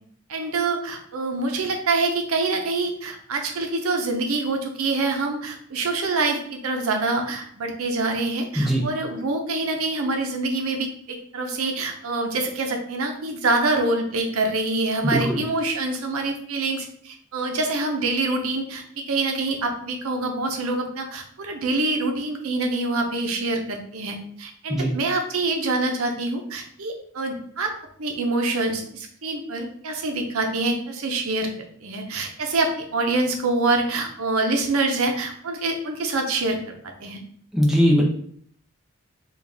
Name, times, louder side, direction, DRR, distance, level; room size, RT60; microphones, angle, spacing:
voice 1, 0.3-27.7 28.0-31.5 31.8-36.7 37.0-37.2, right 2 dB, 80° right, 4 dB, 0.6 m, -25 dB
voice 2, 15.0-15.4 24.7-24.9 37.5-38.0, equal, ahead, -2 dB, 0.5 m, -20 dB
3.9 x 2.4 x 3.4 m, 0.62 s
head